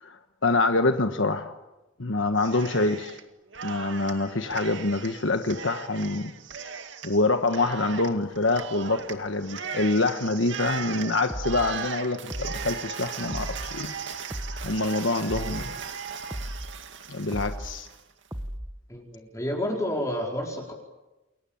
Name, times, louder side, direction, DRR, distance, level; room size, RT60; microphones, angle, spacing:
voice 1, 0.0-1.5 2.0-3.2 3.6-6.3 7.0-13.9 14.6-15.7 17.1-17.9, left 2 dB, 70° left, 7 dB, 1.3 m, -26 dB
Cheering, 2.4-3.2 3.5-18.0, right 6 dB, 65° right, 2.2 m, -38 dB
sound 1, 11.3-11.7 12.3-12.7 13.3-13.7 14.3-14.7 15.3-15.7 16.3-16.7 17.3-17.7 18.3-18.7, equal, 15° right, 1.3 m, -35 dB
voice 2, 18.9-20.7, left 1 dB, 15° left, 0 dB, 4.5 m, -30 dB
29.5 x 22.0 x 8.8 m, 1.0 s
head